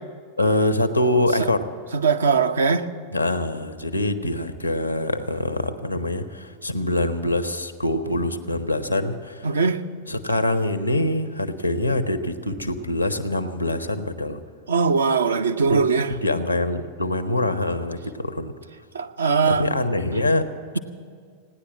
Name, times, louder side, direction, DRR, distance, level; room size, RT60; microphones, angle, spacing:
voice 1, 0.4-1.7 3.1-9.6 10.1-14.4 15.7-15.8 16.1-18.5 19.5-20.8, left 1 dB, 85° left, 10 dB, 0.9 m, -24 dB
voice 2, 1.9-2.8 9.4-9.8 14.7-16.1 18.9-19.6, right 5 dB, 70° right, 8 dB, 0.7 m, -20 dB
17.0 x 10.0 x 7.4 m, 2.1 s
figure-of-eight pair, 90°, 0 cm